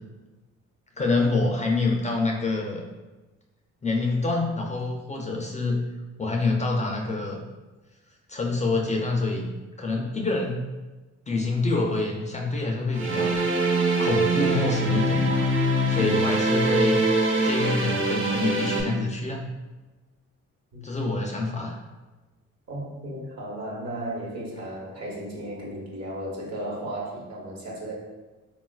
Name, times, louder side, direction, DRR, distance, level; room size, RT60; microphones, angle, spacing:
voice 1, 1.0-2.8 3.8-5.8 6.2-7.4 8.3-9.5 9.8-10.7 11.3-13.4 14.0-15.4 15.9-17.1 17.4-19.4 20.8-21.8, left 3 dB, 25° left, 0 dB, 0.3 m, -26 dB
sound 1, 12.9-18.8, right 1 dB, 40° right, 0.6 m, -23 dB
voice 2, 22.7-27.9, right 1 dB, 60° right, -2 dB, 1.0 m, -35 dB
3.8 x 2.3 x 2.2 m, 1.2 s
cardioid pair, 90°, 30 cm